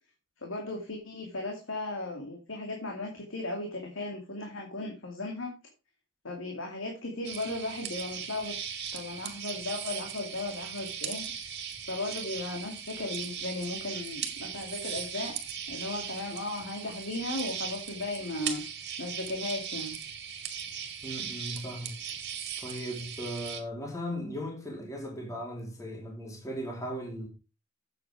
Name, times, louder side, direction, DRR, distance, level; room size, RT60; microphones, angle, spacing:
voice 1, 0.4-5.5 6.2-8.5 8.9-11.3 11.9-15.3 15.7-18.6 19.0-19.9, left 2 dB, 85° left, 2.5 m, -36 dB
sound 1, 7.2-23.6, right 8 dB, 60° right, 2.2 m, -38 dB
voice 2, 21.0-22.0 22.6-27.3, equal, 15° left, 2.7 m, -37 dB
8.3 x 8.1 x 4.8 m
head